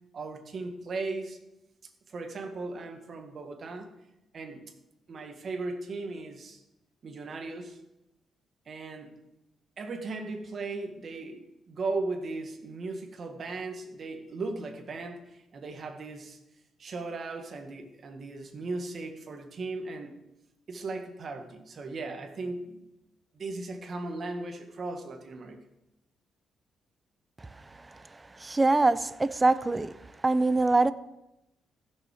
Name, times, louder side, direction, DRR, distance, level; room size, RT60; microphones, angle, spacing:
voice 1, 0.1-1.4 2.1-3.9 4.3-4.6 5.1-6.6 7.0-7.8 8.7-9.2 9.8-16.4 16.8-20.2 20.7-22.8 23.3-25.6, right 3 dB, 50° right, 1.8 m, -37 dB
voice 2, 28.3-29.9 30.2-30.9, right 2 dB, 20° right, 0.5 m, -24 dB
15.0 x 7.0 x 5.0 m
cardioid pair, 105°, 0 cm